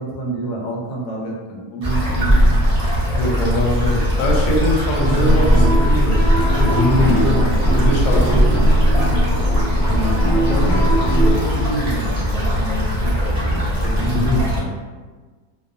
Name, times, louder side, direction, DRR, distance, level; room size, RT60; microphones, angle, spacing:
voice 1, 0.0-2.6 9.9-14.8, right 1 dB, 90° left, -2 dB, 1.2 m, -28 dB
sound 1, 1.8-14.6, equal, 80° right, 0.3 m, -20 dB
voice 2, 3.1-6.2 6.5-8.6 14.1-14.4, left 2 dB, 70° left, -3 dB, 0.9 m, -22 dB
sound 2, 5.0-11.3, right 1 dB, 45° left, 0.5 m, -19 dB
2.5 x 2.2 x 2.5 m, 1.4 s
omnidirectional pair, 1.7 m